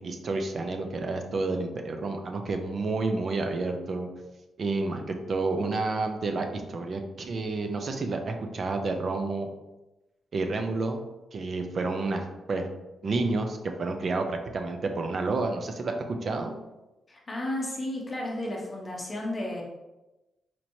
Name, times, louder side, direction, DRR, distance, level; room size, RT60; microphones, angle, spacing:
voice 1, 0.0-4.1 4.6-9.5 10.3-11.0 11.3-12.7 13.0-16.5, right 3 dB, 45° right, 5 dB, 0.4 m, -30 dB
voice 2, 17.1-19.6, left 1 dB, 25° left, -2 dB, 0.7 m, -33 dB
4.3 x 3.0 x 2.6 m, 1.0 s
wide cardioid pair, 150°, 0 cm